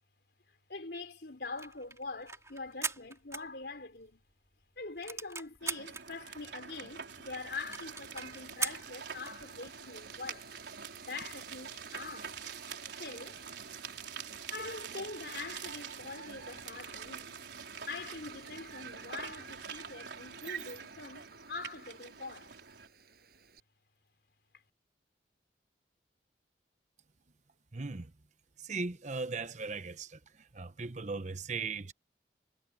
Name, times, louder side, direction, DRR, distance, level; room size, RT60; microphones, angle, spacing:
voice 1, 0.7-4.2 4.8-10.5 11.0-12.3 13.0-13.4 14.5-17.4 17.9-22.5, left 3 dB, 65° left, 4.0 m, -44 dB
sound 1, 1.4-4.1 4.5-4.6 4.8-6.0 6.6-6.7 6.9-7.0 7.3-7.4 7.7-9.4, right 5 dB, 15° right, 3.4 m, -39 dB
sound 2, 5.6-22.9, right 6 dB, 85° right, 3.8 m, -45 dB
Wind, 7.8-23.6, right 7 dB, 60° right, 6.8 m, -57 dB
voice 2, 27.7-28.1 28.6-30.2 30.5-31.9, right 4 dB, 45° right, 0.9 m, -38 dB
head